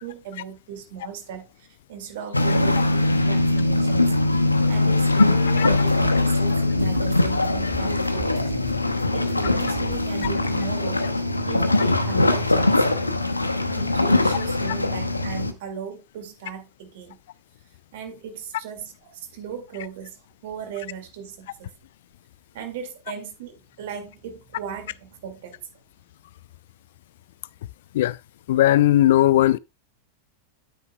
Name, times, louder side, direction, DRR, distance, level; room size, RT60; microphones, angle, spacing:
voice 1, 0.0-8.5 8.9-11.0 11.5-12.9 13.7-17.2 17.9-21.7 22.5-25.6, right 7 dB, 55° right, 2.1 m, -37 dB
sound 1, 2.3-15.5, left 2 dB, 85° left, 0.9 m, -21 dB
sound 2, 5.6-10.9, right 4 dB, 20° right, 2.0 m, -39 dB
voice 2, 28.5-29.6, left 14 dB, 55° left, 0.3 m, -17 dB
9.7 x 9.4 x 2.2 m
figure-of-eight pair, 90°, 0 cm